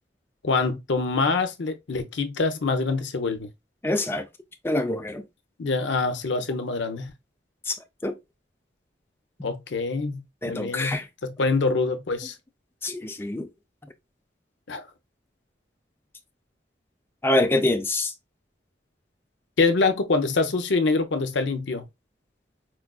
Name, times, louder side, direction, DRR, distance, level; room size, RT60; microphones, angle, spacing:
voice 1, 0.4-3.5 5.6-7.1 9.4-12.3 14.7-14.8 19.6-21.8, left 3 dB, 75° left, 0.6 m, -25 dB
voice 2, 3.8-4.3 4.6-5.2 7.7-7.8 8.0-8.2 10.4-11.0 12.8-13.5 17.2-18.1, left 1 dB, 15° left, 0.4 m, -25 dB
4.5 x 2.4 x 2.2 m
head